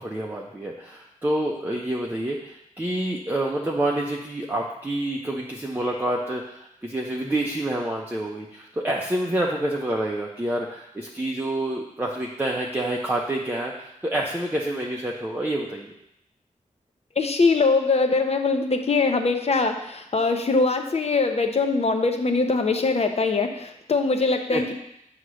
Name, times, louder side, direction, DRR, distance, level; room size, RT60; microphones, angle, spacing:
voice 1, 0.0-15.9 24.5-24.7, right 1 dB, 15° right, -2 dB, 0.6 m, -28 dB
voice 2, 17.2-24.7, left 3 dB, 50° left, 5 dB, 0.7 m, -22 dB
7.9 x 2.9 x 6.2 m, 0.80 s
wide cardioid pair, 110°, 14 cm